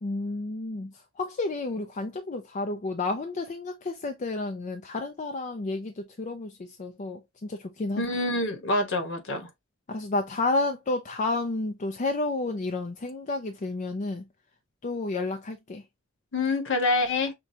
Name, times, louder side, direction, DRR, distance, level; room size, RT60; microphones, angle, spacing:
voice 1, 0.0-8.0 9.9-14.2 14.8-15.8, left 2 dB, 35° left, 0.5 m, -31 dB
voice 2, 8.0-9.5 16.3-17.3, left 2 dB, 60° left, 1.2 m, -26 dB
5.9 x 2.3 x 2.7 m
head